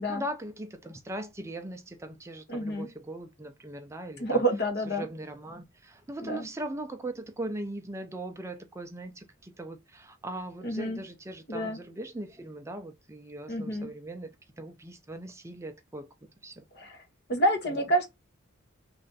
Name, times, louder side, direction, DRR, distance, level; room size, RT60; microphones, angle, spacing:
voice 1, 0.0-4.4 4.9-14.3 14.6-16.1 16.4-16.6, right 1 dB, 15° right, 0.4 m, -39 dB
voice 2, 2.5-2.9 4.2-5.1 6.2-6.5 10.6-11.0 11.5-11.8 13.5-13.9 16.7-17.0 17.3-18.1, right 1 dB, 55° left, 1.1 m, -28 dB
3.2 x 2.5 x 3.8 m
head